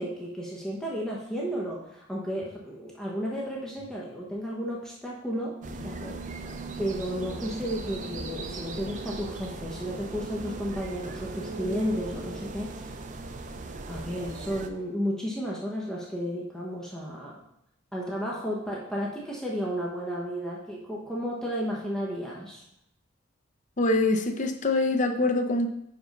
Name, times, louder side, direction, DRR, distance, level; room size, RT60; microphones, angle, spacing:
voice 1, 0.0-6.2 6.8-12.9 13.9-17.4 17.9-22.6, equal, 5° left, -4 dB, 1.0 m, -33 dB
sound 1, 5.6-14.7, right 2 dB, 40° right, 0.5 m, -38 dB
voice 2, 23.8-25.7, left 2 dB, 40° left, 6 dB, 0.7 m, -24 dB
5.3 x 5.2 x 5.3 m, 0.75 s
head